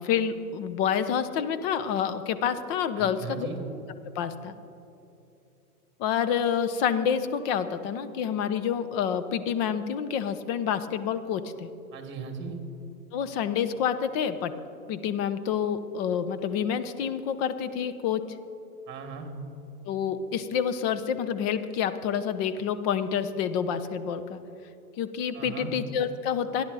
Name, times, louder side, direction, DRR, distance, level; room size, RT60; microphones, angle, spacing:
voice 1, 0.0-3.5 4.1-4.5 6.0-11.7 13.1-14.5 14.9-18.4 19.8-24.4 25.0-26.6, left 8 dB, 40° left, 11 dB, 1.0 m, -28 dB
voice 2, 3.0-3.6 11.9-12.6 18.9-19.3 25.3-25.7, right 6 dB, 25° right, 5 dB, 2.5 m, -38 dB
26.5 x 10.5 x 4.2 m, 2.9 s
hypercardioid pair, 120°, 46 cm